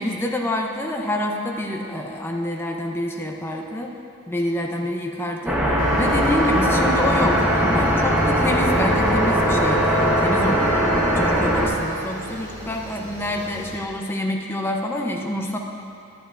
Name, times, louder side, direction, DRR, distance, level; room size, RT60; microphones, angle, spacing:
voice 1, 0.0-3.9 4.3-15.6, left 1 dB, 10° left, 1 dB, 0.6 m, -27 dB
sound 1, 5.5-11.7, equal, 5° right, 0.9 m, -19 dB
sound 2, 5.8-13.8, equal, 65° right, 2.1 m, -38 dB
11.0 x 10.5 x 2.4 m, 2.7 s
head